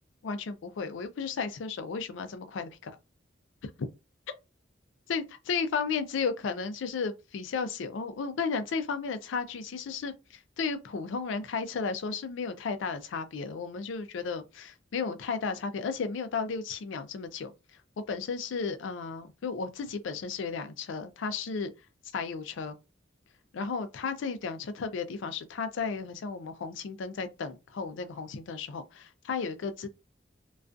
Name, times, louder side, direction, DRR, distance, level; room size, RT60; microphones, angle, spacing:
voice 1, 0.2-3.0 3.6-3.7 5.1-17.5 18.1-21.7 22.0-22.8 23.5-29.9, left 5 dB, 75° left, 0.4 m, -34 dB
2.3 x 2.2 x 2.5 m
head